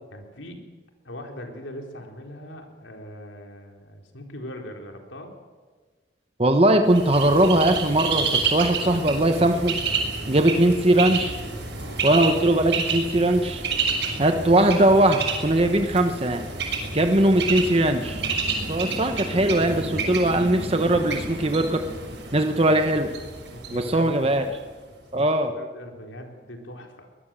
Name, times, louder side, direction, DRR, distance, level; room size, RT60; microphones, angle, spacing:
voice 1, 0.1-0.6 1.0-5.3 11.8-12.2 23.5-24.2 24.5-24.6 25.2-27.1, left 1 dB, 85° left, 2 dB, 4.2 m, -41 dB
voice 2, 6.4-9.7 10.3-11.4 12.0-13.6 14.2-16.5 16.9-18.2 18.7-21.8 22.3-23.1 23.7-24.5 25.1-25.5, right 1 dB, 30° right, 6 dB, 1.2 m, -20 dB
Bird, 6.9-24.7, right 4 dB, 65° right, 6.4 m, -30 dB
24.0 x 19.5 x 7.7 m, 1.4 s
head